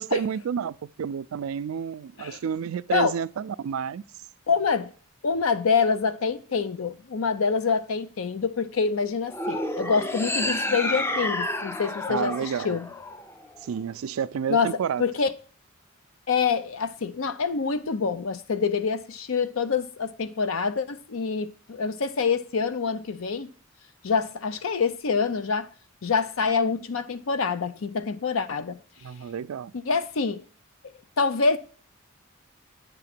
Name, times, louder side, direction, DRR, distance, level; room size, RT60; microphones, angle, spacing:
voice 1, 0.0-4.0 12.1-12.7 13.6-15.0 29.0-29.7, right 7 dB, 85° right, 0.4 m, -30 dB
voice 2, 4.5-4.9 5.2-12.9 14.5-14.7 15.0-15.3 16.3-23.5 24.0-25.7 26.0-28.8 29.9-30.4 31.2-31.6, left 5 dB, 75° left, 0.5 m, -26 dB
sound 1, 9.3-13.7, left 1 dB, 10° left, 0.4 m, -30 dB
9.0 x 3.7 x 5.9 m
head